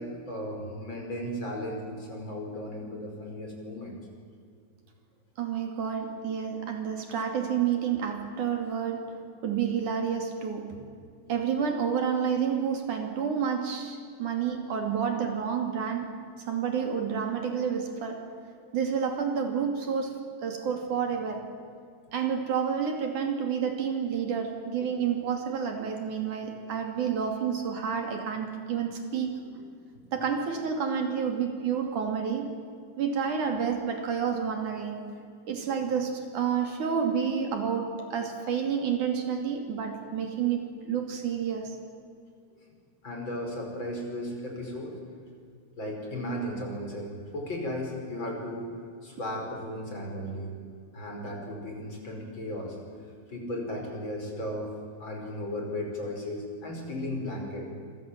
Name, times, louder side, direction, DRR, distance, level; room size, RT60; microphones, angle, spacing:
voice 1, 0.0-4.0 29.6-29.7 30.0-30.1 43.0-45.0 45.8-48.7 49.0-50.5 50.9-52.8 53.3-54.7 55.0-57.7, left 1 dB, 35° left, 1 dB, 5.8 m, -35 dB
voice 2, 5.4-10.8 11.3-16.1 16.4-18.2 18.7-20.1 20.4-21.5 22.1-29.3 30.1-32.5 33.0-35.2 35.5-41.8, right 7 dB, 65° right, 4 dB, 4.0 m, -29 dB
28.0 x 24.5 x 7.6 m, 2.3 s
omnidirectional pair, 3.9 m